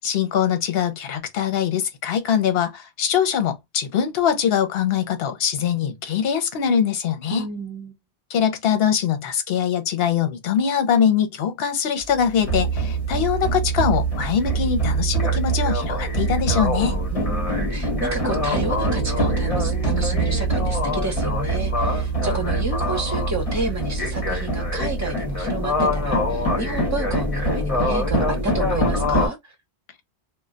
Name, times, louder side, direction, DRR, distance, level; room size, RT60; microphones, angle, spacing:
voice 1, 0.0-7.4 8.3-17.0, left 8 dB, 70° left, 0.9 m, -22 dB
voice 2, 7.3-8.0 17.1-29.5, right 2 dB, 15° right, 0.8 m, -31 dB
sound 1, 12.0-29.3, right 1 dB, 35° left, 1.1 m, -23 dB
2.2 x 2.1 x 3.8 m
omnidirectional pair, 1.1 m